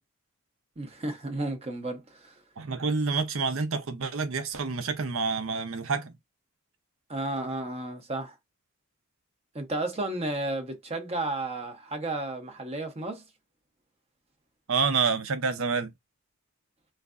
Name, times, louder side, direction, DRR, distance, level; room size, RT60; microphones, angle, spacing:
voice 1, 0.8-2.4 7.1-8.3 9.5-13.2, right 2 dB, 30° right, 0.6 m, -33 dB
voice 2, 2.6-6.1 14.7-15.9, right 4 dB, 65° right, 0.7 m, -28 dB
3.5 x 3.1 x 2.4 m
head